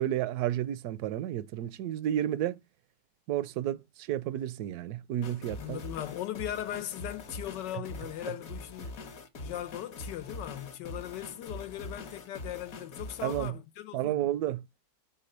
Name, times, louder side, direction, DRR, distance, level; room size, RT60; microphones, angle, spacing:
voice 1, 0.0-2.6 3.3-5.8 13.2-13.6 13.9-14.7, right 12 dB, 70° right, 1.0 m, -31 dB
sound 1, 5.2-13.5, left 2 dB, 55° left, 1.3 m, -43 dB
voice 2, 5.6-9.0 9.4-14.2, left 12 dB, 80° left, 1.3 m, -39 dB
6.8 x 3.8 x 6.5 m
omnidirectional pair, 1.9 m